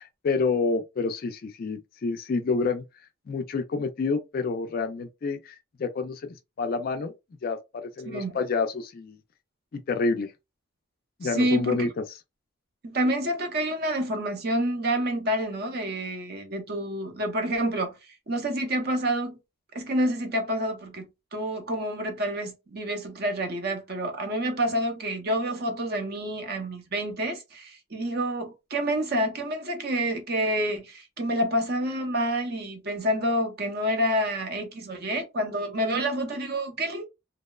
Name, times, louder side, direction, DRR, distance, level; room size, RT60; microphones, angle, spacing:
voice 1, 0.2-2.8 3.3-7.1 7.4-9.2 9.7-10.3 11.2-12.2, left 4 dB, 45° left, 0.3 m, -28 dB
voice 2, 8.0-8.4 11.2-11.9 12.8-17.9 18.3-19.4 19.7-37.1, right 1 dB, 45° right, 0.6 m, -28 dB
2.8 x 2.0 x 2.2 m
head